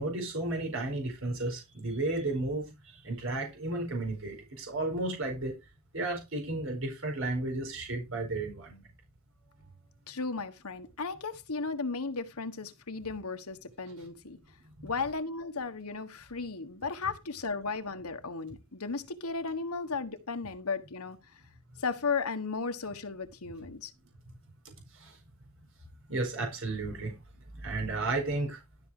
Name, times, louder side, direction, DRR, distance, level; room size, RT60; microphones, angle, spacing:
voice 1, 0.0-2.6 3.0-5.5 5.9-8.8 14.8-14.9 25.0-25.1 26.1-27.1 27.5-28.6, right 2 dB, 60° right, 4.7 m, -33 dB
voice 2, 10.1-14.4 14.8-21.2 21.8-23.9, left 4 dB, 90° left, 1.4 m, -35 dB
13.0 x 6.2 x 4.9 m
head